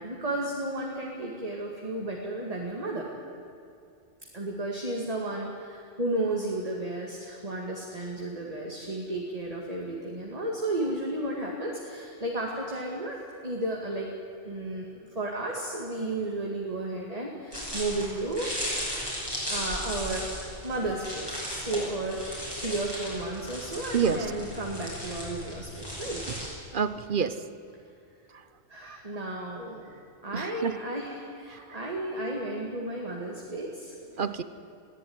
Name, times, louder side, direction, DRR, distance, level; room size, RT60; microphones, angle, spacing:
voice 1, 0.0-3.1 4.3-14.1 14.4-18.5 19.5-26.3 28.7-33.9 34.2-34.3, right 2 dB, 30° right, -1 dB, 2.4 m, -33 dB
sound 1, 17.5-26.5, equal, 20° left, 7.5 m, -36 dB
voice 2, 23.9-24.3 26.3-26.4 26.7-27.4 28.3-28.4 28.9-29.0 30.3-30.8 31.5-31.8 34.2-34.4, right 7 dB, 45° right, 12 dB, 1.0 m, -29 dB
22.0 x 15.5 x 9.6 m, 2.5 s
omnidirectional pair, 1.3 m